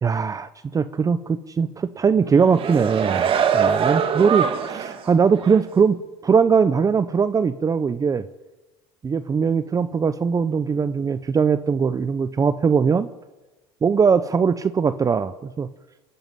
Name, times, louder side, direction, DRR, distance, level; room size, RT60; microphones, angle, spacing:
voice 1, 0.0-3.3 3.5-6.0 6.2-8.2 9.0-13.1 13.8-15.7, right 6 dB, 25° right, 13 dB, 0.8 m, -20 dB
sound 1, 2.3-5.0 5.5-5.6, right 7 dB, 45° right, 2.3 m, -23 dB
21.0 x 12.5 x 9.8 m, 1.1 s
supercardioid pair, 95°, 13 cm